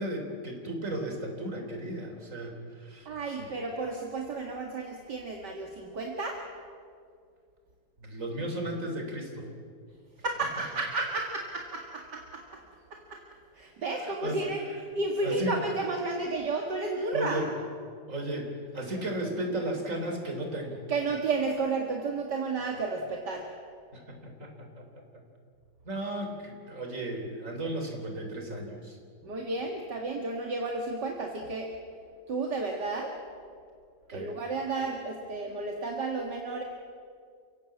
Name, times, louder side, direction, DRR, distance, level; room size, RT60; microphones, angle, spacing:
voice 1, 0.0-3.5 8.0-9.5 14.0-14.5 15.2-15.5 17.1-17.5 18.1-20.8 23.9-24.9 25.8-29.0 34.1-34.3, right 1 dB, 40° right, 3 dB, 4.2 m, -35 dB
voice 2, 3.1-6.4 10.2-12.6 12.9-13.2 13.5-14.6 14.9-17.4 20.9-23.5 29.2-31.7 32.3-33.1 34.1-36.6, right 3 dB, 65° right, 1 dB, 2.6 m, -32 dB
29.5 x 17.0 x 8.6 m, 2.2 s
omnidirectional pair, 2.0 m